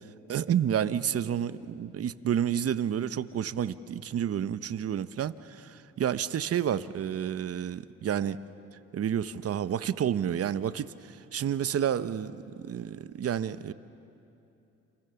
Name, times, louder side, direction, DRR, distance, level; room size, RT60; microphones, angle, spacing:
voice 1, 0.3-8.4 8.9-12.4 12.6-13.7, right 9 dB, 50° right, 14 dB, 0.9 m, -30 dB
29.5 x 28.0 x 7.0 m, 2.8 s
cardioid pair, 90°, 30 cm